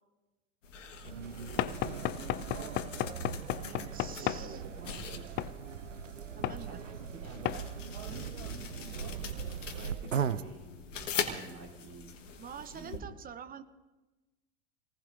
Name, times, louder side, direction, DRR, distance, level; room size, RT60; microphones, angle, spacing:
sound 1, 0.6-13.0, left 6 dB, 80° left, 1.5 m, -43 dB
sound 2, 1.0-10.4, right 7 dB, 90° right, 0.7 m, -39 dB
voice 1, 1.5-2.2 4.1-5.3 6.4-12.2 12.6-13.1, right 2 dB, 45° right, 1 dB, 3.9 m, -50 dB
Knock / Wood, 1.6-4.5 5.4-5.6 6.4-6.6 7.4-7.6, left 14 dB, 30° left, 0.5 m, -33 dB
voice 2, 3.6-4.6 6.3-6.8 12.4-13.6, right 8 dB, 25° right, 12 dB, 0.8 m, -46 dB
27.5 x 19.0 x 2.7 m, 1.1 s
figure-of-eight pair, 85°, 37 cm